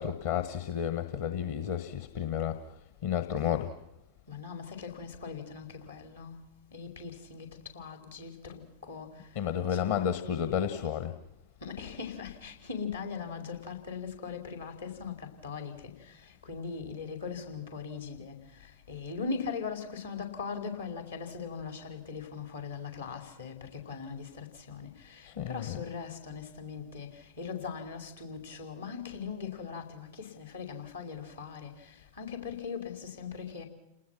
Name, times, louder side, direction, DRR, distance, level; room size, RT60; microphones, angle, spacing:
voice 1, 0.0-2.6 3.0-3.7 9.3-11.1 25.2-25.8, left 9 dB, 55° left, 1.5 m, -31 dB
voice 2, 4.3-6.4 6.7-7.5 7.7-9.1 9.7-10.1 11.6-15.9 16.5-18.3 18.9-27.1 27.4-31.7 32.2-33.6, left 5 dB, 75° left, 5.0 m, -40 dB
30.0 x 20.0 x 6.0 m
figure-of-eight pair, 90°, 0 cm